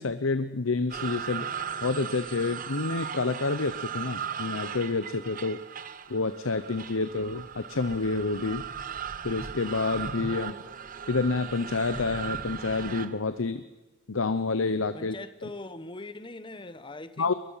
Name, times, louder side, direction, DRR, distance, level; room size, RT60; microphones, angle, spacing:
voice 1, 0.0-1.4 1.8-5.6 6.1-8.6 9.2-10.6 11.1-13.6 14.1-15.2 17.2-17.3, left 3 dB, 75° left, 11 dB, 0.9 m, -28 dB
sound 1, 0.9-13.2, right 7 dB, 40° right, 0.9 m, -37 dB
voice 2, 14.9-17.3, left 2 dB, 25° left, 12 dB, 1.0 m, -41 dB
22.5 x 20.5 x 5.8 m, 1.1 s
head